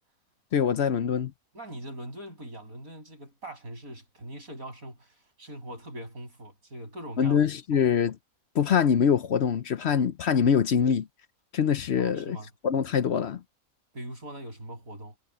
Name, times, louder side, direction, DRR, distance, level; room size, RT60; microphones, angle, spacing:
voice 1, 0.5-1.3 7.2-8.1 8.5-11.1 11.5-12.4 12.6-13.4, left 7 dB, 60° left, 0.9 m, -24 dB
voice 2, 1.5-7.4 7.7-7.8 12.0-12.5 13.9-15.2, right 1 dB, 85° right, 7.6 m, -41 dB
omnidirectional pair, 1.4 m